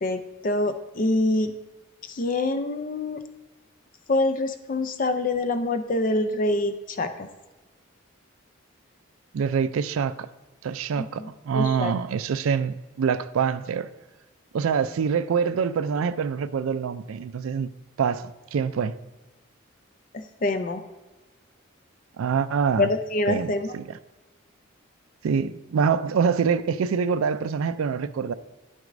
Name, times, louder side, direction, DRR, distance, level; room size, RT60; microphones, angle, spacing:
voice 1, 0.0-1.5 2.0-3.2 4.1-7.3 11.0-11.9 20.1-20.8 22.8-23.7, left 2 dB, 40° left, 0.4 m, -26 dB
voice 2, 9.3-10.3 10.6-13.9 14.5-17.7 18.0-18.9 22.2-22.9 23.3-24.0 25.2-28.3, right 6 dB, 85° right, 0.4 m, -25 dB
11.0 x 6.1 x 2.5 m
head